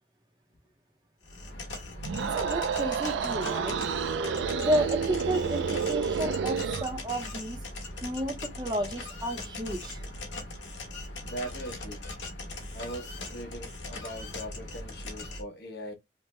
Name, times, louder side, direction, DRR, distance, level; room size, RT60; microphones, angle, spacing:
sound 1, 1.2-15.4, left 2 dB, 90° left, 1.1 m, -40 dB
sound 2, 2.0-6.9, right 6 dB, 90° right, 0.4 m, -30 dB
voice 1, 2.2-3.8 4.5-7.6 8.0-10.0, equal, 25° right, 0.6 m, -32 dB
voice 2, 11.2-12.1 12.7-15.9, right 1 dB, 60° left, 1.0 m, -40 dB
3.1 x 2.1 x 3.2 m
head